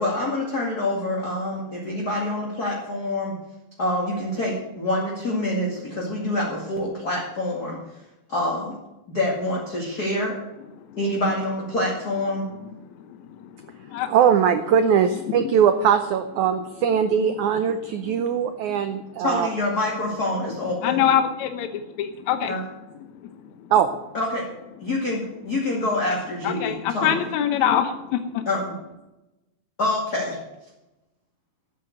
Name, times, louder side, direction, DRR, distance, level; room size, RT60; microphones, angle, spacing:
voice 1, 0.0-3.3 3.8-7.8 8.3-8.8 9.1-10.4 11.0-12.5 19.2-21.0 22.5-22.6 24.1-24.5 24.8-27.3 28.5-28.8 29.8-30.4, left 1 dB, 30° left, -3 dB, 2.2 m, -26 dB
voice 2, 13.1-14.1 15.4-15.5 17.2-17.3 18.7-18.8 20.8-22.5 26.4-28.5, left 9 dB, 80° left, 8 dB, 1.7 m, -25 dB
voice 3, 14.1-19.5 23.7-23.9, right 8 dB, 85° right, 9 dB, 1.7 m, -20 dB
13.5 x 8.8 x 8.0 m, 0.98 s
omnidirectional pair, 4.5 m